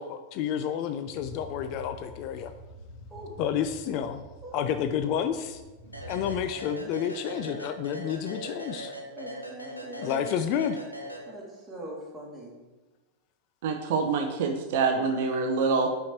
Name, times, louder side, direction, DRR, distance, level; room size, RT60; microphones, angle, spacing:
voice 1, 0.0-2.5 3.4-4.2 4.5-5.6 6.1-8.9 10.0-10.8, left 8 dB, 40° left, 9 dB, 0.3 m, -30 dB
sound 1, 1.1-6.5, left 1 dB, 65° left, 1.7 m, -46 dB
sound 2, 5.9-11.7, right 1 dB, 90° left, 0.7 m, -41 dB
voice 2, 9.2-10.6 11.3-12.5, right 1 dB, 10° right, -4 dB, 1.9 m, -42 dB
voice 3, 13.6-15.9, right 4 dB, 55° right, 4 dB, 0.5 m, -26 dB
5.7 x 4.4 x 4.3 m, 1.2 s
figure-of-eight pair, 90°, 0 cm